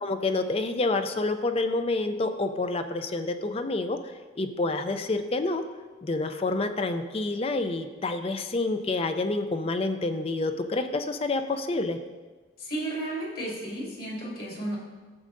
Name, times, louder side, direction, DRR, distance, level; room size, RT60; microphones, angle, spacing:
voice 1, 0.0-4.0 4.4-5.6 6.0-12.0, left 2 dB, 30° left, 8 dB, 0.5 m, -28 dB
voice 2, 12.6-14.8, right 1 dB, 50° left, -5 dB, 2.6 m, -33 dB
12.5 x 7.5 x 2.6 m, 1.3 s
head